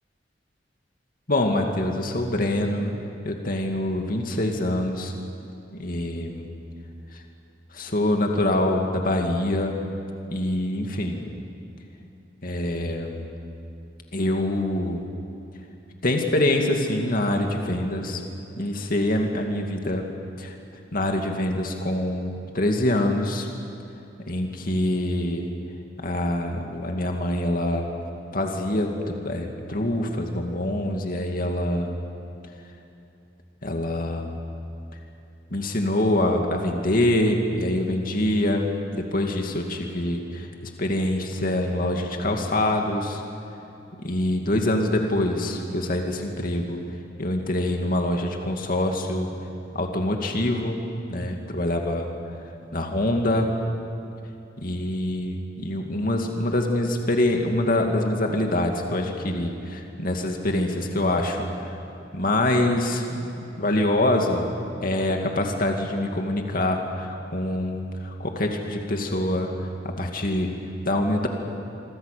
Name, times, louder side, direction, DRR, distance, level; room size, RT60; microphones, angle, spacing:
voice 1, 1.3-2.9 3.2-5.1 5.7-6.5 7.7-9.8 10.3-11.2 12.4-13.3 14.1-15.0 16.0-18.2 18.6-20.1 20.4-20.5 20.9-23.5 24.3-25.5 26.0-27.9 28.3-29.0 29.2-32.0 33.6-34.4 35.5-43.2 44.0-46.8 47.2-49.3 49.7-50.8 51.1-52.1 52.7-53.5 54.6-61.8 62.1-63.1 63.6-64.5 64.8-69.5 69.8-70.5 70.8-71.3, left 1 dB, 50° left, 2 dB, 2.4 m, -25 dB
27.5 x 24.0 x 6.9 m, 2.8 s
head